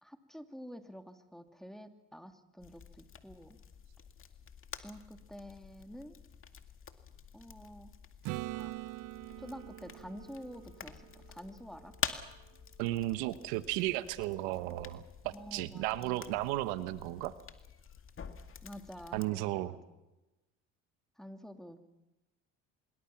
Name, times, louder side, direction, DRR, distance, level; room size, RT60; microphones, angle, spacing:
voice 1, 0.0-3.6 4.8-6.2 7.3-7.9 8.6-8.7 9.4-11.9 15.3-16.4 18.6-19.8 21.2-21.8, equal, ahead, 6 dB, 2.6 m, -49 dB
sound 1, 2.6-19.3, left 7 dB, 40° left, 2.2 m, -47 dB
Acoustic guitar / Strum, 8.2-12.0 16.9-17.0, right 19 dB, 75° right, 0.8 m, -44 dB
voice 2, 12.8-17.3 19.1-19.7, right 16 dB, 90° right, 13 dB, 1.2 m, -34 dB
25.5 x 22.5 x 5.9 m, 1.0 s
supercardioid pair, 85°, 32 cm